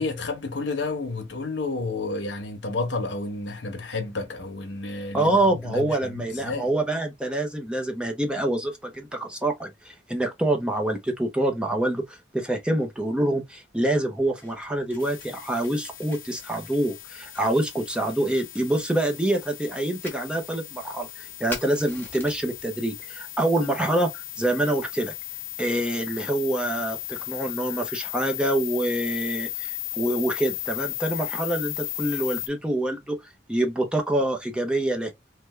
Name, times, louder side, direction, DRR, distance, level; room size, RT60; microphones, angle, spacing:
voice 1, 0.0-6.7, left 3 dB, 70° left, 0.9 m, -31 dB
voice 2, 5.1-25.1 25.6-33.2 33.5-35.1, right 1 dB, 5° right, 0.6 m, -26 dB
Fire, 14.2-22.6, left 2 dB, 10° left, 1.2 m, -46 dB
sound 1, 15.0-32.5, left 16 dB, 50° left, 0.5 m, -36 dB
3.3 x 2.1 x 3.1 m
head